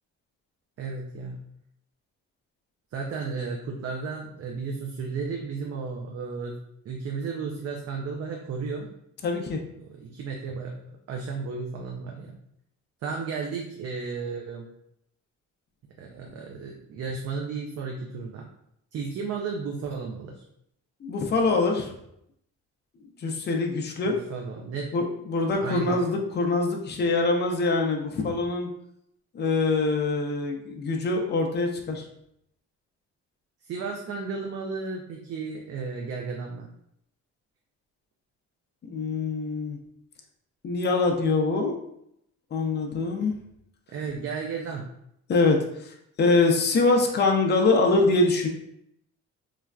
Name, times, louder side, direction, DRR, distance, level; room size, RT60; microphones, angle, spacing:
voice 1, 0.8-1.4 2.9-6.6 6.9-8.9 9.8-10.8 11.1-12.4 13.0-14.7 16.0-18.5 18.9-20.4 24.1-24.9 25.6-26.0 33.6-36.7 43.9-44.9, right 4 dB, 55° right, 0 dB, 0.5 m, -33 dB
voice 2, 9.2-9.6 21.0-21.9 23.2-24.2 24.9-28.7 29.3-32.0 38.8-39.8 40.6-41.8 42.5-43.4 45.3-48.5, left 3 dB, 35° left, 2 dB, 0.5 m, -24 dB
3.2 x 2.4 x 2.2 m, 0.76 s
cardioid pair, 90°, 30 cm